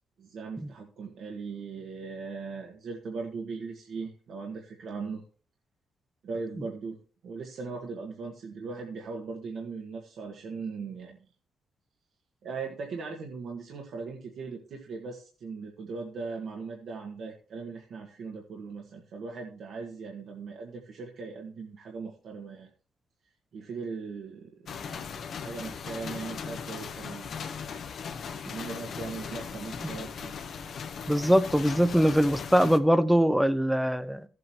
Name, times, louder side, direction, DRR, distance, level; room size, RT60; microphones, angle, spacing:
voice 1, 0.2-5.2 6.2-11.3 12.4-22.7 23.5-27.4 28.1-30.4 31.9-32.0, right 4 dB, 65° right, 1.8 m, -39 dB
sound 1, 24.7-32.8, left 6 dB, 60° left, 1.1 m, -38 dB
voice 2, 31.1-34.3, equal, ahead, 0.8 m, -22 dB
14.5 x 8.0 x 3.0 m
cardioid pair, 90°, 0 cm